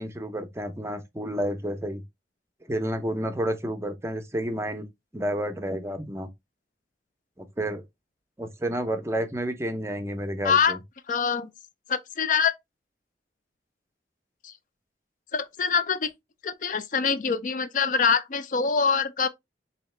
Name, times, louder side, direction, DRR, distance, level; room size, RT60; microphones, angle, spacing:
voice 1, 0.0-2.0 2.7-4.9 5.1-6.3 7.4-7.8 8.4-10.8, right 1 dB, 15° right, 0.5 m, -30 dB
voice 2, 10.4-10.8 11.1-11.5 11.9-12.5 14.4-14.5 15.3-16.1 16.4-19.3, left 6 dB, 45° left, 0.4 m, -24 dB
3.9 x 2.8 x 3.2 m
head